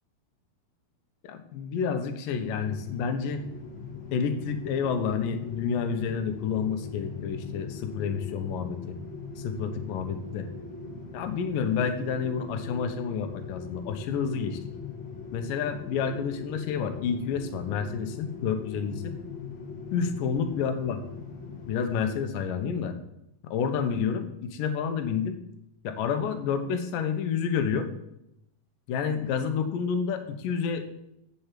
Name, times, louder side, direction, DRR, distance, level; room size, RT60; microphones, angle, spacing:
voice 1, 1.2-3.4 4.1-9.0 9.4-10.5 11.1-14.6 15.3-19.1 19.9-21.0 21.7-23.0 23.5-25.3 25.8-27.9 28.9-30.9, left 6 dB, 70° left, 7 dB, 2.3 m, -29 dB
sound 1, 2.3-22.1, left 5 dB, 50° left, 2.8 m, -40 dB
8.5 x 7.0 x 7.5 m, 0.82 s
omnidirectional pair, 4.8 m